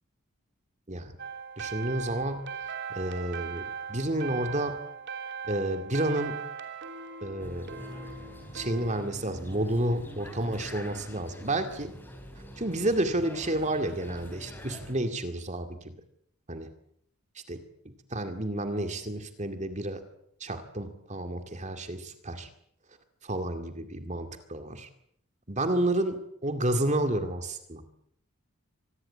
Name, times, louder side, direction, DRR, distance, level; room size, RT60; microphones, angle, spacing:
sound 1, 1.2-9.0, right 6 dB, 55° right, 3.0 m, -39 dB
voice 1, 1.6-4.8 5.4-6.4 7.2-7.9 8.5-11.9 12.6-15.9 16.5-16.7 17.5-17.6 18.1-20.0 20.4-22.5 23.2-24.9 25.5-27.8, right 1 dB, 35° right, 7 dB, 2.2 m, -30 dB
sound 2, 7.4-14.9, equal, 10° left, 4.4 m, -45 dB
25.5 x 20.0 x 8.5 m, 0.69 s
head